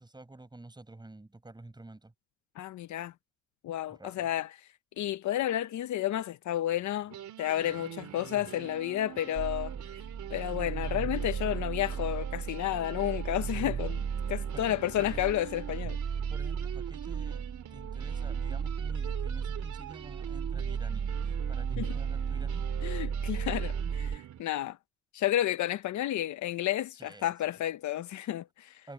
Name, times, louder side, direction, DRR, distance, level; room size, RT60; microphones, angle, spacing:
voice 1, 0.0-2.1 3.9-4.3 14.5-15.1 16.3-22.7 27.0-27.5 28.8-28.9, right 2 dB, 15° right, 5.8 m, -50 dB
voice 2, 2.6-3.1 3.6-4.5 5.0-9.7 10.3-14.0 14.3-16.0 21.8-21.9 22.8-24.8 25.1-28.7, left 13 dB, 70° left, 0.8 m, -31 dB
sound 1, 6.7-6.8 7.1-24.4, right 11 dB, 70° right, 3.6 m, -45 dB
sound 2, 9.4-24.2, right 7 dB, 40° right, 1.2 m, -34 dB
cardioid pair, 90°, 30 cm